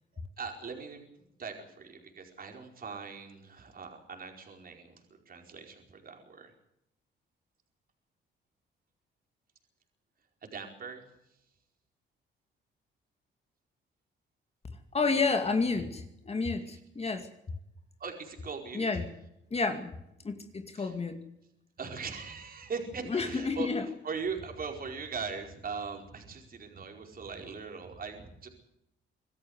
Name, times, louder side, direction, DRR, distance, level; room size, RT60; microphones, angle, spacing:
voice 1, 0.4-1.0 1.4-6.5 10.4-11.1 16.7-16.8 18.0-18.9 20.7-20.9 21.8-23.7 24.0-28.5, right 5 dB, 45° right, 2 dB, 4.8 m, -40 dB
voice 2, 14.9-17.3 18.7-19.1 19.5-19.9 20.2-21.2 23.1-23.8, left 4 dB, 30° left, 6 dB, 2.4 m, -30 dB
25.5 x 14.0 x 8.0 m, 0.82 s
cardioid pair, 90°, 20 cm